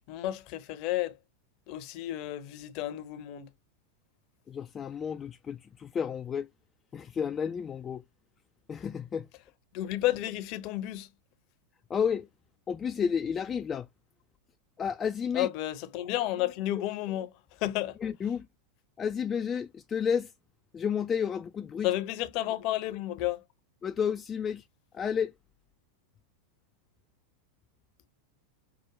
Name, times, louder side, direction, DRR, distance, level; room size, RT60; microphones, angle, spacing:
voice 1, 0.1-1.2 1.7-3.5 9.7-11.1 15.3-18.0 21.8-23.4, left 14 dB, 45° left, 0.7 m, -32 dB
voice 2, 4.5-6.5 6.9-8.0 8.7-9.3 11.9-12.3 12.7-13.9 14.8-15.5 18.0-18.5 19.0-20.3 20.7-21.9 23.8-24.6 24.9-25.3, left 7 dB, 25° left, 0.3 m, -31 dB
5.9 x 2.2 x 3.0 m
figure-of-eight pair, 90°, 0 cm